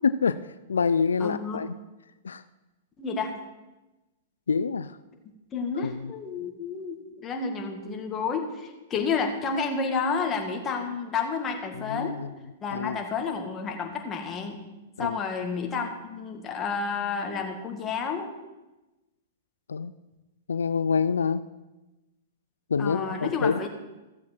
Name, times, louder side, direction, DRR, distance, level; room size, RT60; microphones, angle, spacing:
voice 1, 0.0-0.4 0.7-1.7 2.2-2.4 4.5-5.0 5.8-6.1 11.7-12.3 12.7-13.0 15.0-15.2 19.7-19.9 20.5-21.4 22.7-23.7, left 5 dB, 90° left, 14 dB, 0.3 m, -26 dB
voice 2, 1.2-1.6 3.0-3.3 5.5-12.2 12.6-14.6 15.0-18.3 22.8-23.7, left 5 dB, 25° left, 3 dB, 1.8 m, -30 dB
15.0 x 7.3 x 4.5 m, 1.1 s
hypercardioid pair, 120°, 0 cm